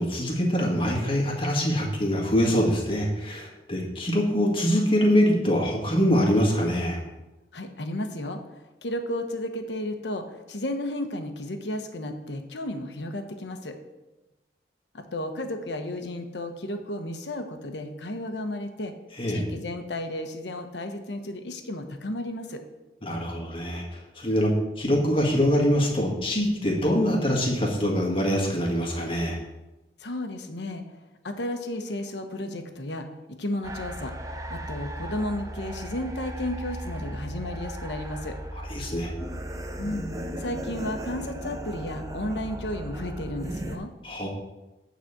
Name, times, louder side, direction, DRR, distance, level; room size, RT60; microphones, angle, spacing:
voice 1, 0.0-7.0 19.2-19.4 23.0-24.5 24.8-29.4 38.7-39.1 44.0-44.3, equal, 30° left, -1 dB, 1.8 m, -24 dB
voice 2, 7.5-13.8 14.9-18.9 19.3-22.6 30.0-31.0 31.2-33.1 33.4-34.1 34.5-38.4 39.8-43.9, left 1 dB, 80° left, 6 dB, 1.0 m, -33 dB
sound 1, 33.6-43.8, right 1 dB, 20° right, 0.6 m, -36 dB
8.9 x 4.1 x 7.3 m, 1.0 s
head